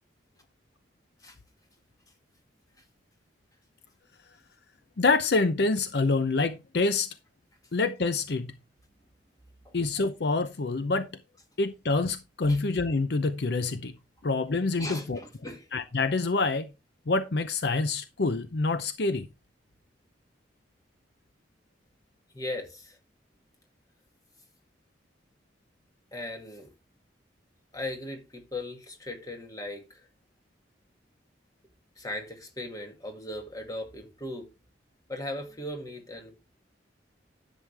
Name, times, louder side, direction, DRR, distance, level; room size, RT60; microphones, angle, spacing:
voice 1, 5.0-7.1 7.7-8.5 9.7-11.1 11.6-13.9 14.2-15.2 15.7-16.6 17.1-19.3, left 3 dB, 60° left, 0.6 m, -26 dB
voice 2, 14.8-15.7 22.3-23.0 26.1-26.7 27.7-30.1 32.0-34.5 35.1-36.3, left 1 dB, 20° left, 2.1 m, -38 dB
11.0 x 7.5 x 3.3 m
head